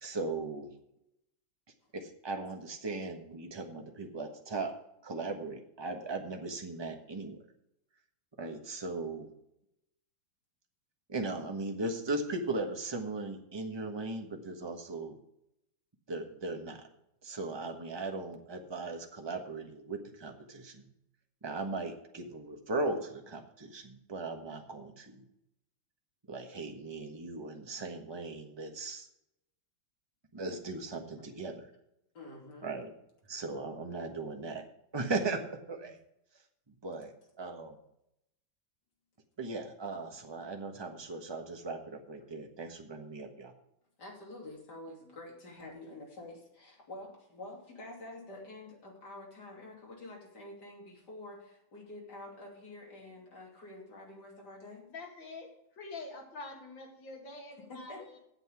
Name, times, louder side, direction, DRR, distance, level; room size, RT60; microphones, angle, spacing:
voice 1, 0.0-0.7 1.9-4.7 5.0-7.4 8.4-9.3 11.1-15.2 16.1-16.9 17.2-20.9 21.4-25.2 26.3-29.1 30.3-31.7 32.6-32.9 33.3-34.6 34.9-36.0 36.7-37.8 39.4-43.5, right 3 dB, 15° right, 4 dB, 1.0 m, -38 dB
voice 2, 32.1-32.7 43.2-43.3 44.0-54.8 57.6-58.2, left 2 dB, 60° left, -1 dB, 3.3 m, -48 dB
voice 3, 54.9-58.2, left 3 dB, 75° left, 1 dB, 2.8 m, -46 dB
8.2 x 7.9 x 8.1 m, 0.82 s
omnidirectional pair, 2.1 m